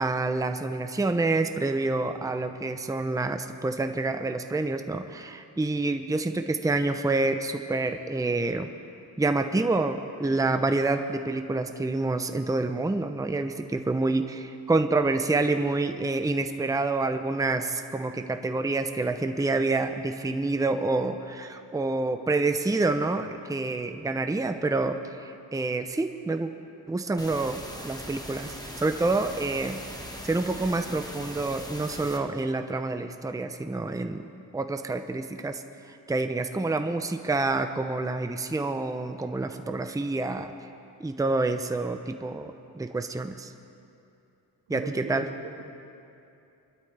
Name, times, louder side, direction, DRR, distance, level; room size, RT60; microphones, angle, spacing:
voice 1, 0.0-8.7 9.2-26.5 26.9-29.8 30.2-34.2 34.5-35.6 36.1-40.5 41.0-43.5 44.7-45.2, right 3 dB, 10° right, 7 dB, 0.7 m, -27 dB
sound 1, 27.2-32.2, equal, 10° left, 1.5 m, -40 dB
voice 2, 44.7-45.8, right 5 dB, 80° right, 1 dB, 1.8 m, -39 dB
23.0 x 12.5 x 3.4 m, 2.6 s
cardioid pair, 65°, 41 cm